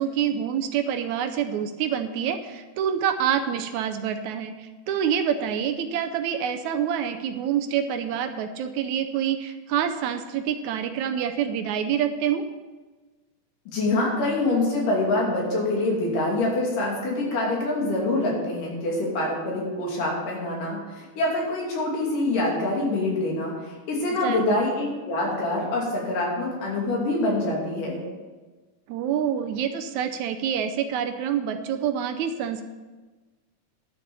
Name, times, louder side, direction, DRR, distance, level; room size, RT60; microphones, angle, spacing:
voice 1, 0.0-12.4 24.2-24.6 28.9-32.6, right 8 dB, 75° right, 7 dB, 1.9 m, -27 dB
voice 2, 13.7-28.0, left 2 dB, 90° left, -3 dB, 4.3 m, -25 dB
11.0 x 6.7 x 6.9 m, 1.3 s
omnidirectional pair, 3.6 m